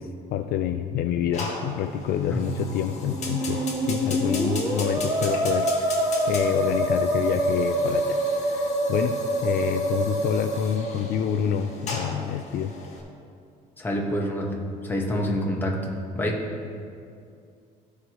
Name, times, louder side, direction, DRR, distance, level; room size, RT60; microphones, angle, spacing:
voice 1, 0.0-9.2 9.4-12.7, left 9 dB, 65° left, 7 dB, 0.4 m, -27 dB
Fire, 1.3-13.0, left 3 dB, 45° left, 1.5 m, -38 dB
Musical instrument, 3.0-11.1, right 1 dB, 25° right, 1.3 m, -26 dB
voice 2, 13.8-14.5 14.8-15.8 16.1-16.5, equal, 10° left, -2 dB, 1.3 m, -26 dB
14.0 x 4.8 x 3.0 m, 2.4 s
cardioid pair, 110°, 17 cm